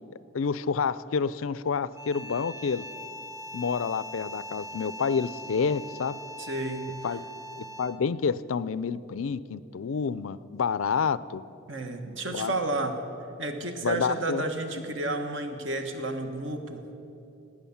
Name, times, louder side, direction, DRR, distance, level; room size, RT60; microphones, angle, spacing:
voice 1, 0.3-2.9 3.5-6.2 7.0-7.2 7.8-11.4 12.3-12.5 13.8-14.4, left 5 dB, 90° left, 17 dB, 0.5 m, -28 dB
sound 1, 1.9-8.1, left 1 dB, 15° right, 0.8 m, -41 dB
voice 2, 6.4-6.9 11.7-13.0 13.4-16.8, right 2 dB, 65° right, 5 dB, 1.4 m, -31 dB
19.0 x 8.7 x 7.1 m, 2.9 s
head